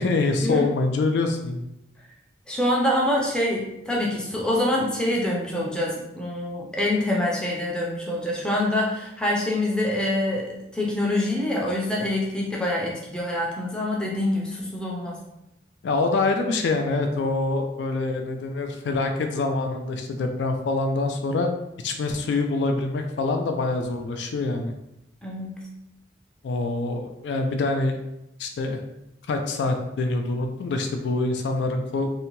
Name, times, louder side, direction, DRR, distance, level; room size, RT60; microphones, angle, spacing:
voice 1, 0.0-1.7 15.8-21.5 21.8-24.7 26.4-28.0 28.4-28.8 29.3-32.1, left 3 dB, 70° left, 5 dB, 0.3 m, -25 dB
voice 2, 2.5-10.5 10.7-15.2 25.2-25.6, left 1 dB, 5° left, -3 dB, 0.4 m, -25 dB
2.7 x 2.1 x 2.9 m, 0.86 s
head